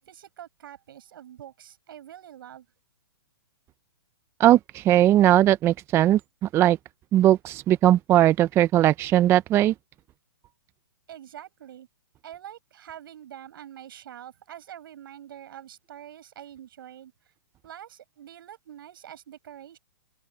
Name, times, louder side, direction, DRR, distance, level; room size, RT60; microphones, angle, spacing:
voice 1, 0.0-2.7 11.1-11.9 12.2-17.1 17.6-19.8, right 11 dB, 65° right, 7.8 m, -45 dB
voice 2, 4.4-6.8 7.1-9.7, right 13 dB, 20° right, 0.4 m, -19 dB
hypercardioid pair, 135°, 13 cm